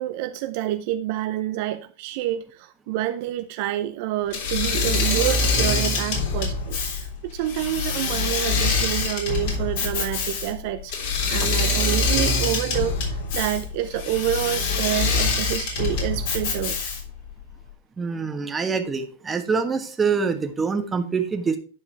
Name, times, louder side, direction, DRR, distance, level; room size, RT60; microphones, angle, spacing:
voice 1, 0.0-16.9, right 13 dB, 55° right, 0.6 m, -28 dB
Engine / Mechanisms, 4.3-17.2, left 4 dB, 60° left, 3.5 m, -24 dB
voice 2, 18.0-21.6, right 5 dB, 15° right, 1.3 m, -25 dB
10.0 x 4.9 x 4.6 m
hypercardioid pair, 105°, 0 cm